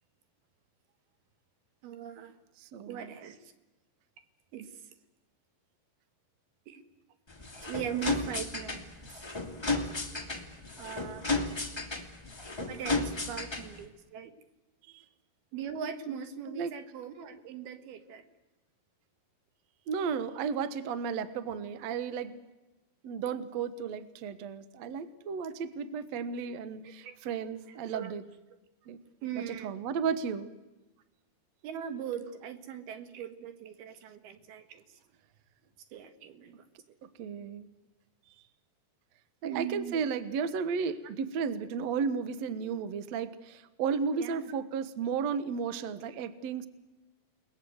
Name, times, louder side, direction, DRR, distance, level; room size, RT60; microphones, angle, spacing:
voice 1, 1.8-2.3 2.9-3.4 4.5-4.7 6.7-6.8 7.7-9.2 10.8-11.2 12.6-14.3 15.5-18.2 27.0-27.2 27.9-28.1 29.2-29.7 31.6-34.8 35.9-36.6 39.4-40.0 44.2-44.5, right 9 dB, 65° right, 9 dB, 3.3 m, -40 dB
voice 2, 2.6-3.1 14.9-15.0 16.5-16.7 19.9-22.4 23.0-28.2 28.9-29.0 29.3-30.5 37.2-37.7 39.4-46.7, right 6 dB, 80° right, 12 dB, 1.5 m, -34 dB
sound 1, 7.3-13.8, left 3 dB, 40° left, 0.3 m, -34 dB
29.5 x 20.0 x 8.0 m, 1.1 s
omnidirectional pair, 5.0 m